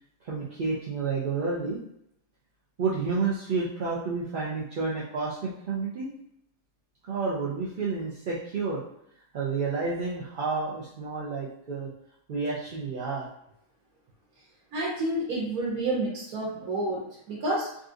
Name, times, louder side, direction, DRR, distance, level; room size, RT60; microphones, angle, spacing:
voice 1, 0.2-1.8 2.8-6.1 7.1-8.8 9.3-11.9 12.3-13.3, right 4 dB, 55° right, -6 dB, 0.6 m, -30 dB
voice 2, 14.7-17.8, right 1 dB, 90° right, -4 dB, 1.2 m, -29 dB
3.8 x 2.5 x 2.4 m, 0.73 s
omnidirectional pair, 1.5 m